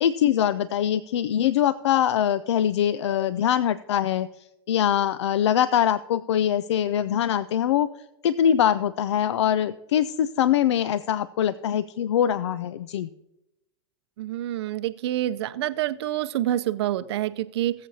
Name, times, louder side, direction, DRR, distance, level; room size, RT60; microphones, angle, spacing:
voice 1, 0.0-7.9 8.2-13.1, left 10 dB, 85° left, 16 dB, 0.4 m, -23 dB
voice 2, 14.2-17.7, right 13 dB, 70° right, 13 dB, 0.6 m, -27 dB
20.0 x 7.5 x 2.8 m, 0.92 s
hypercardioid pair, 120°, 14 cm